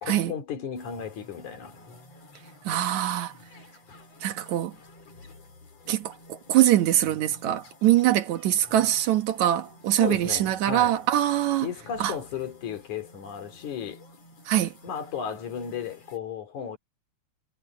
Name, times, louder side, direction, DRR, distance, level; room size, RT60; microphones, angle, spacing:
voice 1, 0.0-1.8 10.0-11.0 11.6-14.0 14.8-16.8, left 7 dB, 80° left, 4.1 m, -34 dB
sound 1, 0.7-16.2, left 2 dB, 60° left, 5.6 m, -51 dB
voice 2, 2.7-3.3 4.2-4.7 5.9-6.1 6.5-11.7 12.0-12.1 14.5-14.7, right 13 dB, 75° right, 2.6 m, -23 dB
omnidirectional pair, 3.3 m